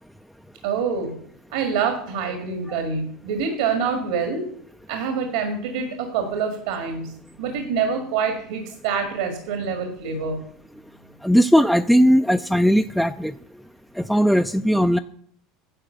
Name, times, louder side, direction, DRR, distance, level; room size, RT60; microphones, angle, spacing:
voice 1, 0.6-1.1 1.5-4.4 4.9-7.1 7.4-10.4, right 6 dB, 85° right, 5 dB, 1.8 m, -26 dB
voice 2, 11.2-13.3 14.0-15.0, equal, ahead, 8 dB, 0.3 m, -18 dB
10.0 x 4.8 x 7.8 m, 0.63 s
supercardioid pair, 100°, 0 cm